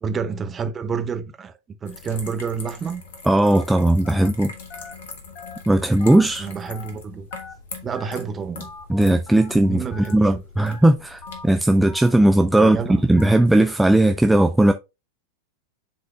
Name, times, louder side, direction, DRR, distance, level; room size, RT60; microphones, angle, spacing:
voice 1, 0.0-3.0 6.4-7.3 7.8-8.7 9.7-10.4 12.6-13.0, right 5 dB, 20° right, 0.9 m, -29 dB
sound 1, 1.8-13.7, left 4 dB, 55° left, 1.5 m, -42 dB
voice 2, 3.3-4.5 5.7-6.5 8.9-9.8 10.1-12.8 13.1-14.7, right 1 dB, 5° right, 0.4 m, -17 dB
Telephone, 3.4-3.6 4.0-4.3 4.7-4.9 5.3-5.6 6.0-6.2 6.6-6.9 7.3-7.5 8.0-8.2 8.6-8.8 9.3-9.5 9.9-10.1 10.6-10.8 11.2-11.4 11.9-12.1 12.5-12.7 13.2-13.4, left 5 dB, 30° left, 1.3 m, -40 dB
11.5 x 3.9 x 2.2 m
figure-of-eight pair, 90°, 0 cm